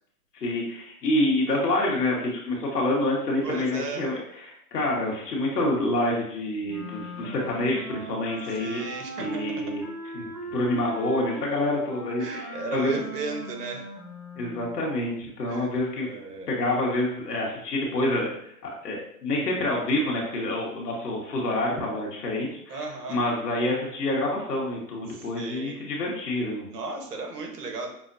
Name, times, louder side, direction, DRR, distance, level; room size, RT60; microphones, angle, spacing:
voice 1, 0.3-8.8 9.2-9.8 10.1-13.0 14.4-16.1 16.5-26.6, left 1 dB, 85° left, -3 dB, 1.4 m, -27 dB
voice 2, 3.4-4.1 8.6-9.6 12.2-13.9 15.5-15.7 16.1-16.6 22.7-23.2 25.1-25.8 26.7-27.9, right 3 dB, 80° right, 2 dB, 1.2 m, -35 dB
Wind instrument woodwind instrument, 6.7-14.9, equal, 15° right, 1.2 m, -38 dB
6.0 x 2.1 x 2.6 m, 0.69 s
hypercardioid pair, 160°, 46 cm